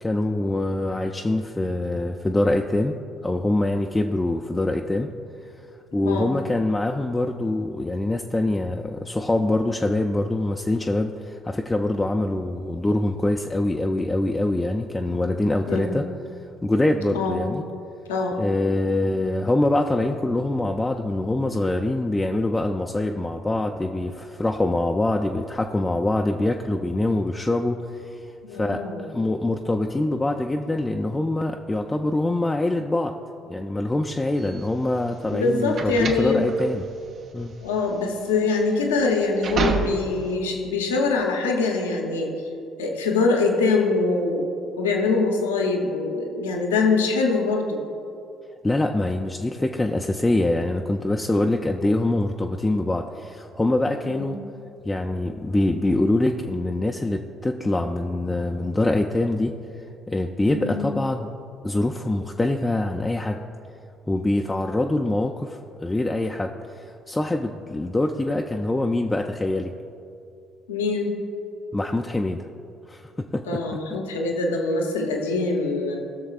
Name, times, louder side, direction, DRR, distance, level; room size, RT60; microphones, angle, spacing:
voice 1, 0.0-3.0 3.2-5.1 5.9-16.1 16.6-17.6 18.4-28.2 28.5-28.8 29.1-33.1 33.5-36.9 37.3-37.5 48.6-54.4 54.9-59.5 60.1-61.3 61.6-63.4 64.1-69.7 71.7-72.5 72.9-73.6, left 2 dB, 15° left, 2 dB, 0.4 m, -24 dB
voice 2, 6.0-6.3 15.7-16.0 17.1-17.5 18.1-18.4 28.4-29.1 35.3-36.5 37.6-42.3 42.8-44.5 44.8-47.8 54.0-54.4 60.5-60.9 70.7-71.2 73.5-76.0, left 3 dB, 90° left, 1 dB, 0.9 m, -24 dB
sound 1, 34.4-40.3, right 4 dB, 55° right, 0.8 m, -30 dB
17.5 x 6.3 x 2.4 m, 2.5 s
hypercardioid pair, 55°, 0 cm